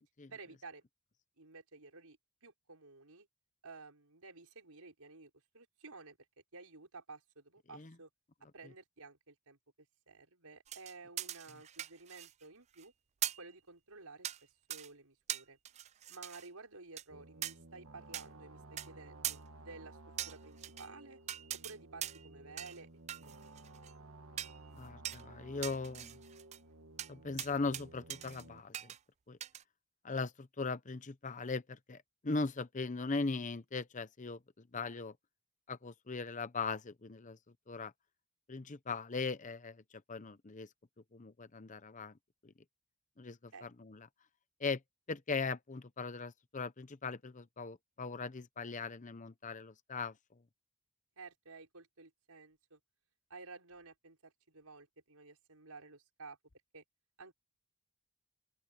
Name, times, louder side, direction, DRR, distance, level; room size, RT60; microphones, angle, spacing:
voice 1, 0.3-0.8 1.4-3.3 3.6-6.2 6.5-8.1 8.5-9.6 10.1-12.9 13.4-15.6 16.1-21.2 21.5-22.9 23.2-23.6 43.5-43.7 51.2-52.8 53.3-56.4 56.7-56.8 57.2-57.3, right 3 dB, 80° right, 4.9 m, -53 dB
sound 1, 10.7-12.4 12.7-12.8 13.2-13.5 14.2-14.4 14.7-14.9 15.3-16.5 17.0-17.1 17.4-17.5 18.1-18.2 18.8-18.9 19.2-19.4 20.2-20.9 21.3-21.7 22.0-22.3 22.6-22.8 23.1-23.9 24.4-24.6 25.0-25.2 25.6-26.6 27.0-27.1 27.4-27.8 28.1-28.4 28.7-29.0 29.4-29.6, right 12 dB, 30° right, 0.3 m, -41 dB
sound 2, 17.1-28.6, right 2 dB, 65° right, 1.6 m, -55 dB
voice 2, 24.7-26.2 27.1-28.9 29.3-29.4 30.0-35.2 35.7-37.4 37.7-37.9 38.5-39.8 40.1-40.7 41.1-42.2 42.4-42.5 43.2-44.1 44.6-44.8 45.1-50.4, left 4 dB, 35° left, 0.8 m, -39 dB
open air
head